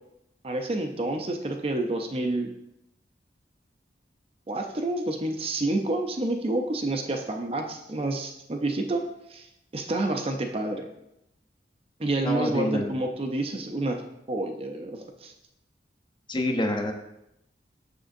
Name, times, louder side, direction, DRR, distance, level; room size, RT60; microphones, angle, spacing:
voice 1, 0.4-2.5 4.5-9.0 9.3-9.5 9.7-10.9 12.0-14.0 14.3-15.3, right 2 dB, 35° right, 4 dB, 0.5 m, -29 dB
voice 2, 12.2-12.9 16.3-16.9, left 1 dB, 25° left, 3 dB, 0.7 m, -27 dB
6.7 x 6.3 x 2.6 m, 0.83 s
head